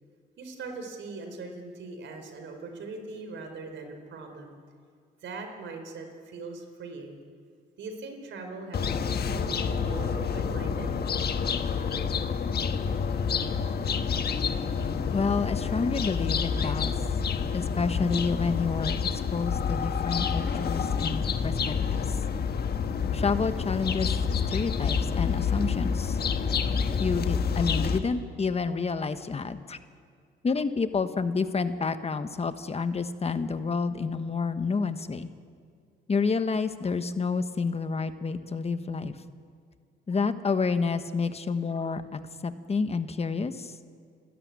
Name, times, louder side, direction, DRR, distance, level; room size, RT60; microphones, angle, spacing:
voice 1, 0.4-4.5 5.2-7.2 7.8-10.9, right 3 dB, 70° right, 5 dB, 4.2 m, -40 dB
sound 1, 8.7-28.0, left 6 dB, 55° left, 1.4 m, -28 dB
voice 2, 15.1-16.9 17.5-22.2 23.1-24.1 24.5-26.2 27.0-29.8 30.4-35.3 36.1-39.2 40.1-43.7, left 4 dB, 30° left, 10 dB, 1.3 m, -29 dB
28.0 x 13.0 x 9.7 m, 2.1 s
cardioid pair, 90°, 20 cm